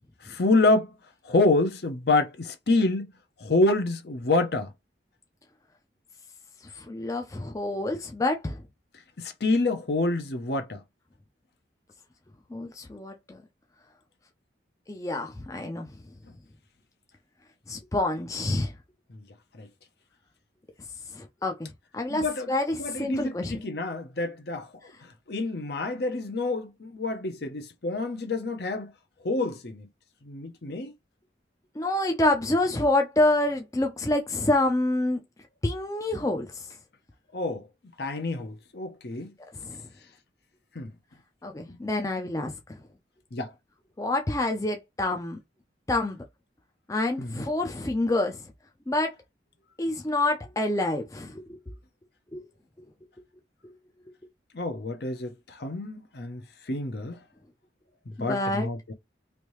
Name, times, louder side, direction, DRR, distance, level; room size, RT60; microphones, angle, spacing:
voice 1, 0.2-0.9 1.3-3.1 3.4-4.7 9.2-10.8 19.6-19.7 22.1-22.5 22.8-24.7 25.3-28.9 29.2-29.9 30.2-30.9 37.3-37.6 38.0-39.3 40.7-40.9 41.7-41.8 43.3-43.5 47.2-47.5 54.5-56.4 56.7-57.2 58.1-58.9, left 2 dB, 60° left, 0.8 m, -27 dB
voice 2, 6.7-8.6 12.5-13.4 14.9-15.9 17.7-18.7 21.1-21.7 21.9-23.6 31.8-35.2 35.6-36.7 39.5-39.9 41.4-42.8 44.0-45.4 45.9-46.2 46.9-48.4 48.9-49.1 49.8-51.6 52.3-52.4 58.2-58.7, left 2 dB, 20° left, 0.4 m, -27 dB
3.3 x 2.7 x 3.1 m
head